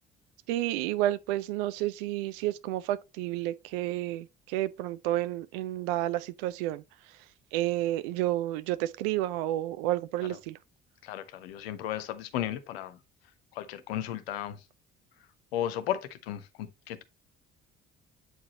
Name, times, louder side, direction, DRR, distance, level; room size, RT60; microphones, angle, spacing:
voice 1, 0.5-6.8 7.5-10.6, right 14 dB, 60° right, 0.5 m, -30 dB
voice 2, 11.0-13.0 13.5-14.6 15.5-17.0, left 11 dB, 70° left, 0.8 m, -35 dB
7.9 x 4.8 x 2.9 m
figure-of-eight pair, 50°, 32 cm